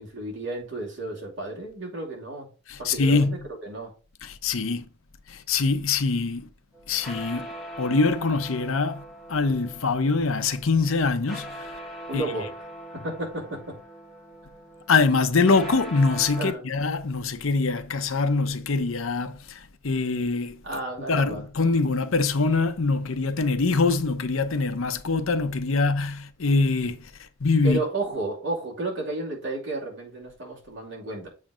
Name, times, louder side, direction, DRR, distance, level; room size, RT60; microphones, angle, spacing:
voice 1, 0.0-2.5 2.8-3.9 12.1-12.6 13.0-13.6 16.4-16.7 20.6-21.4 27.6-31.3, right 2 dB, 60° right, 2.6 m, -32 dB
voice 2, 2.7-3.4 4.2-4.8 5.3-6.5 6.9-7.5 7.8-9.0 9.3-11.8 12.1-12.2 14.9-20.6 21.1-27.0 27.4-27.8, left 4 dB, 75° left, 0.7 m, -24 dB
sound 1, 6.7-16.5, equal, ahead, 1.1 m, -41 dB
7.4 x 3.2 x 4.9 m
head